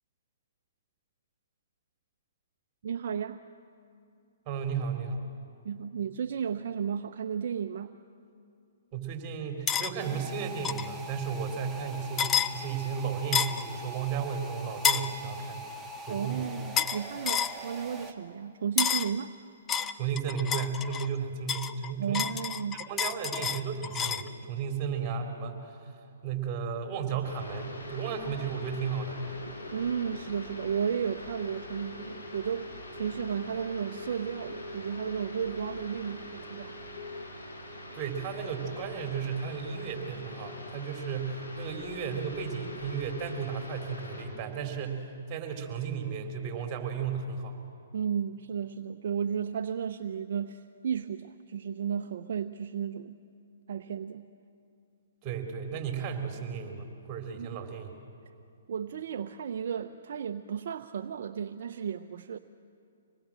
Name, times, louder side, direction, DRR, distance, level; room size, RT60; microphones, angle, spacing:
voice 1, 2.8-3.4 5.6-7.9 16.1-19.3 22.0-22.9 29.7-36.8 47.9-53.2 53.7-54.3 57.3-57.5 58.7-62.4, right 7 dB, 60° right, 7 dB, 0.7 m, -33 dB
voice 2, 4.5-5.2 8.9-15.7 16.1-16.5 19.9-22.3 22.7-25.9 26.2-29.2 37.9-47.6 55.2-57.9, right 6 dB, 30° right, 4 dB, 3.7 m, -34 dB
sound 1, 9.7-9.9 10.6-10.9 12.2-12.5 13.3-13.6 14.8-15.1 16.8-17.0 17.3-17.6 18.8-19.1 19.7-21.1 21.5-24.3, left 8 dB, 20° left, 0.6 m, -29 dB
sound 2, 10.0-18.1, right 1 dB, 5° right, 1.6 m, -43 dB
sound 3, 27.2-44.2, left 1 dB, 75° left, 7.3 m, -42 dB
25.5 x 20.0 x 7.5 m, 2.5 s
hypercardioid pair, 135°, 0 cm